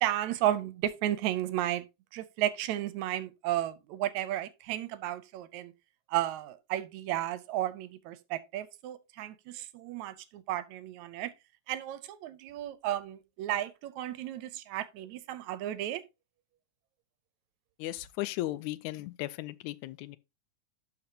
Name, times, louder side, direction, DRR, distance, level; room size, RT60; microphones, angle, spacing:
voice 1, 0.0-1.9 2.1-5.7 6.1-11.3 11.7-16.0, right 13 dB, 80° right, 2.0 m, -33 dB
voice 2, 17.8-20.2, left 16 dB, 85° left, 2.0 m, -36 dB
12.0 x 5.3 x 2.8 m
omnidirectional pair, 3.3 m